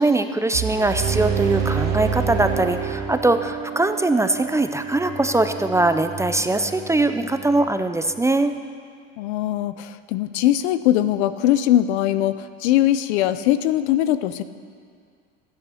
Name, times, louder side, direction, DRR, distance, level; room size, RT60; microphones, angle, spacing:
voice 1, 0.0-8.5, right 2 dB, 10° right, 9 dB, 0.4 m, -21 dB
sound 1, 0.5-3.6, right 8 dB, 80° right, 1.6 m, -27 dB
Bowed string instrument, 0.9-8.2, right 5 dB, 55° right, 1.7 m, -31 dB
voice 2, 9.2-14.4, left 12 dB, 80° left, 13 dB, 0.7 m, -21 dB
12.5 x 9.7 x 5.6 m, 2.2 s
supercardioid pair, 100°, 33 cm